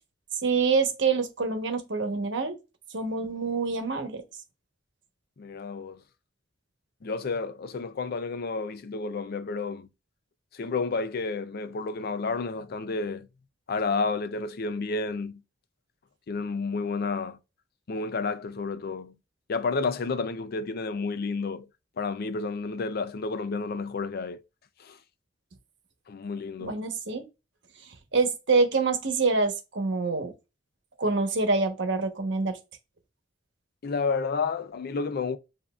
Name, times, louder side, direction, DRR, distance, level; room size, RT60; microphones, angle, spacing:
voice 1, 0.4-2.6 2.9-4.2 26.6-27.2 28.1-30.3 31.0-32.6, right 4 dB, 65° right, 1.0 m, -26 dB
voice 2, 5.4-6.0 7.0-9.9 10.5-13.3 13.7-15.4 16.3-17.4 17.9-19.1 19.5-21.7 22.0-24.4 24.8-25.0 26.1-26.8 33.8-35.4, left 4 dB, 55° left, 0.5 m, -31 dB
7.1 x 2.6 x 2.3 m
head